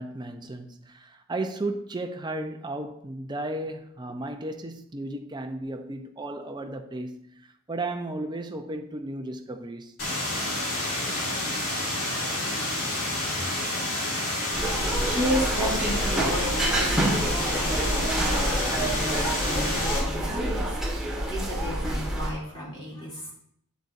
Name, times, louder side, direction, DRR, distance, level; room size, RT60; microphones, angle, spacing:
voice 1, 0.0-9.9 14.5-14.6 19.8-20.2, right 2 dB, 20° right, 0.6 m, -34 dB
sound 1, 10.0-20.0, left 1 dB, 70° left, 2.7 m, -29 dB
sound 2, 14.5-22.3, right 1 dB, 5° right, 1.6 m, -27 dB
voice 2, 15.0-20.7 21.0-23.3, equal, 20° left, 3.0 m, -33 dB
8.3 x 7.9 x 2.6 m
head